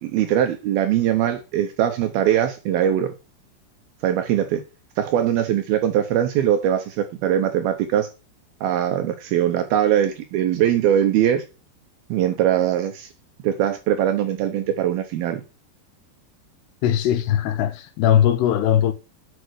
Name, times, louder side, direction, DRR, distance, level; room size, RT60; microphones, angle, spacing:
voice 1, 0.0-3.1 4.0-4.6 5.0-8.1 8.6-11.4 12.1-13.1 13.4-15.4, right 10 dB, 75° right, 2.4 m, -21 dB
voice 2, 16.8-18.9, left 10 dB, 75° left, 2.8 m, -19 dB
8.1 x 5.7 x 7.9 m
omnidirectional pair, 5.1 m